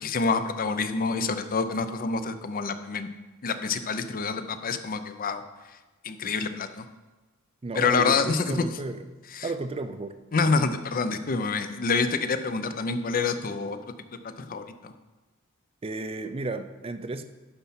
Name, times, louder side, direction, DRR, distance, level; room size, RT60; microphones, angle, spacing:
voice 1, 0.0-3.1 3.4-5.4 6.0-6.8 7.7-8.8 9.3-9.5 10.3-13.8 14.2-14.9, left 4 dB, 40° left, 10 dB, 0.5 m, -27 dB
voice 2, 7.6-9.0 9.4-10.1 15.8-17.2, right 3 dB, 25° right, 9 dB, 0.4 m, -33 dB
11.0 x 4.2 x 5.7 m, 1.2 s
head